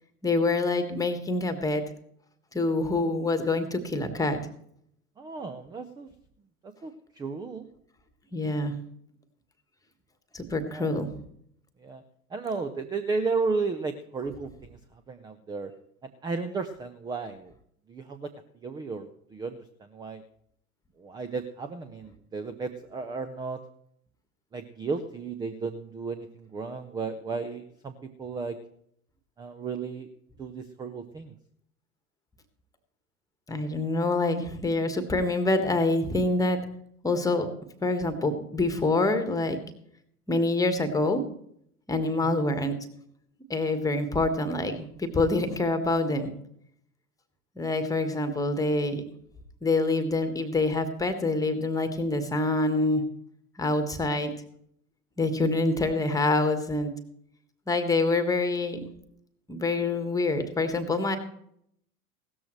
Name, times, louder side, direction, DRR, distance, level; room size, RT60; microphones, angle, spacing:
voice 1, 0.2-1.8 2.5-4.4 8.3-8.7 10.3-11.1 33.5-36.6 37.0-37.5 37.8-39.6 40.3-41.2 41.9-42.8 43.5-46.3 47.6-49.0 49.6-53.0 53.6-54.3 55.2-56.9 57.7-58.8 59.5-61.2, left 2 dB, 10° left, 9 dB, 1.5 m, -26 dB
voice 2, 5.2-6.1 6.6-7.7 10.7-11.0 11.8-12.0 12.3-15.7 16.2-17.5 17.9-20.2 21.0-23.6 24.5-28.6 29.4-30.1 30.4-31.4 42.2-42.6, right 4 dB, 10° right, 11 dB, 0.5 m, -34 dB
16.5 x 13.5 x 3.2 m, 0.69 s
figure-of-eight pair, 90°, 44 cm